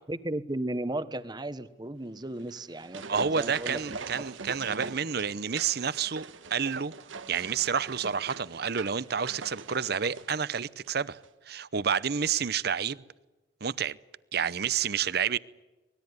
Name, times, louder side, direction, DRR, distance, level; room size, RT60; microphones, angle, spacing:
voice 1, 0.1-4.0, right 1 dB, 20° right, 1.1 m, -35 dB
sound 1, 2.4-11.0 11.2-11.3, right 4 dB, 85° right, 1.3 m, -41 dB
voice 2, 3.1-6.9 7.3-11.2 11.5-13.0 13.6-14.0 14.3-15.4, right 7 dB, 55° right, 0.7 m, -29 dB
24.5 x 20.0 x 9.6 m
head